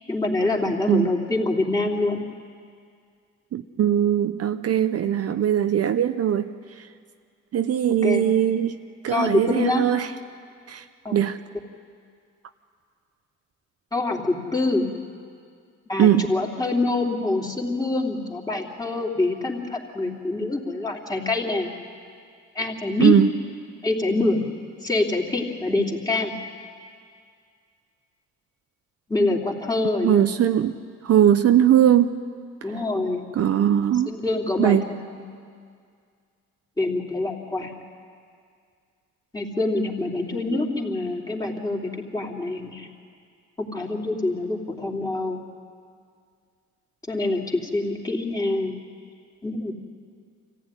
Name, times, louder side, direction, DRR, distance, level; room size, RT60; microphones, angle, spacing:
voice 1, 0.1-2.2 8.0-8.2 9.1-9.8 11.0-11.2 13.9-14.9 15.9-21.7 22.5-23.1 23.8-24.4 24.8-26.3 29.1-30.3 32.6-33.3 34.1-35.3 36.8-37.7 39.3-42.9 43.6-45.4 47.1-48.7 49.4-49.7, left 2 dB, 15° left, 0 dB, 3.1 m, -25 dB
voice 2, 3.5-6.5 6.8-6.9 7.5-8.8 9.0-10.1 10.7-10.9 11.1-11.4 16.0-16.3 23.0-23.3 30.0-30.8 31.0-32.1 32.6-32.7 33.3-34.1 34.6-34.8 40.5-40.6, right 10 dB, 55° right, 8 dB, 0.8 m, -20 dB
25.5 x 15.0 x 9.9 m, 2.2 s
cardioid pair, 90°, 30 cm